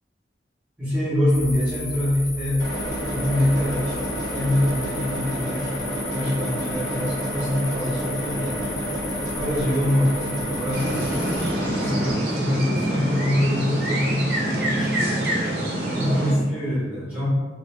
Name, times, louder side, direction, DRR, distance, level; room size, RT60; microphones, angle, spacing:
voice 1, 0.8-2.7 3.1-4.0 4.3-5.7 6.1-8.6 9.4-11.3 11.6-15.2 15.9-17.3, left 1 dB, 10° right, -11 dB, 0.7 m, -25 dB
sound 1, 1.3-11.5, left 3 dB, 50° left, 0.5 m, -35 dB
sound 2, 2.6-12.1, right 1 dB, 20° left, 0.8 m, -29 dB
sound 3, 10.7-16.3, right 1 dB, 65° right, 0.6 m, -25 dB
2.4 x 2.0 x 2.9 m, 1.4 s
head